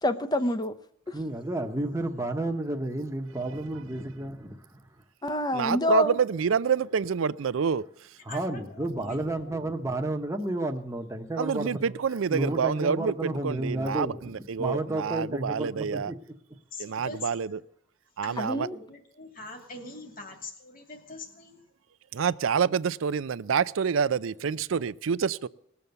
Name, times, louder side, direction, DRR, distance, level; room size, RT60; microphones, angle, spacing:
voice 1, 0.0-0.8 1.1-1.2 5.2-6.2 18.4-18.8, left 1 dB, 20° left, 0.7 m, -27 dB
voice 2, 1.1-4.8 8.2-12.0 12.3-16.2, right 1 dB, 15° right, 1.0 m, -31 dB
voice 3, 5.5-7.8 11.4-16.1 16.8-17.6 18.2-18.7 22.1-25.5, right 6 dB, 80° right, 0.5 m, -27 dB
voice 4, 8.3-9.6 16.7-17.6 18.2-21.6, left 2 dB, 45° left, 2.4 m, -43 dB
19.0 x 7.0 x 7.9 m
head